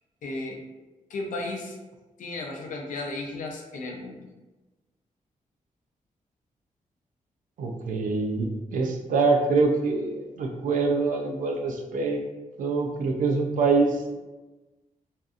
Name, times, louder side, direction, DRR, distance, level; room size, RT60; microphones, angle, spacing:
voice 1, 0.2-0.6 1.1-1.8 2.2-4.3, left 2 dB, 75° left, 1 dB, 0.5 m, -34 dB
voice 2, 7.6-12.2 12.6-14.2, right 4 dB, 75° right, 3 dB, 0.4 m, -25 dB
2.6 x 2.3 x 2.4 m, 1.1 s
wide cardioid pair, 165°, 14 cm